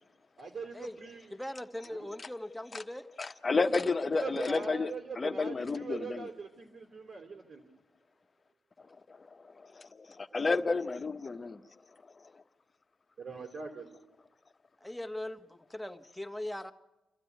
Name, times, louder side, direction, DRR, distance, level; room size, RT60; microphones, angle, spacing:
voice 1, 0.4-1.3 1.8-2.1 4.1-7.7 10.3-10.7 13.2-14.0, right 4 dB, 60° right, 3 dB, 3.1 m, -42 dB
voice 2, 1.3-3.1 14.8-16.7, left 1 dB, 5° left, 7 dB, 1.6 m, -40 dB
voice 3, 3.2-6.3 9.7-11.6, left 3 dB, 40° left, 10 dB, 1.2 m, -31 dB
29.0 x 13.0 x 9.3 m, 1.0 s
supercardioid pair, 45°, 0 cm